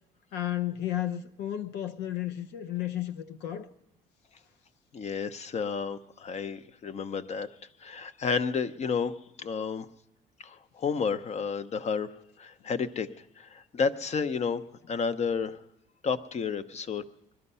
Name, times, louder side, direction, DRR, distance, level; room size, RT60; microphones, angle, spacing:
voice 1, 0.3-3.7, left 12 dB, 85° left, 0.8 m, -33 dB
voice 2, 4.9-7.5 7.8-9.9 10.4-12.1 12.4-13.1 13.4-14.6 14.9-15.6 16.0-17.0, left 5 dB, 40° left, 0.8 m, -31 dB
21.0 x 12.5 x 5.6 m
cardioid pair, 110°, 17 cm